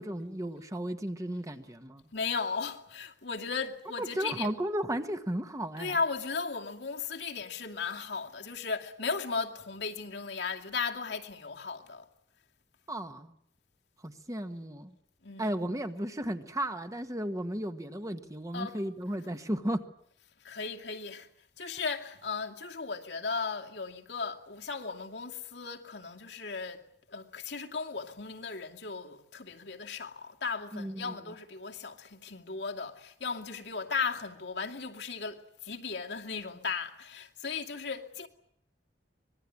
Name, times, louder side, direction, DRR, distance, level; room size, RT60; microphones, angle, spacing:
voice 1, 0.0-2.0 4.0-6.0 12.9-13.3 14.0-15.0 15.4-19.8 30.7-31.3, right 1 dB, 20° right, 1.5 m, -34 dB
voice 2, 2.1-4.5 5.8-12.1 15.2-15.5 18.5-18.8 20.4-21.3 21.6-26.8 27.1-38.3, left 5 dB, 70° left, 2.5 m, -36 dB
25.5 x 21.0 x 8.7 m
head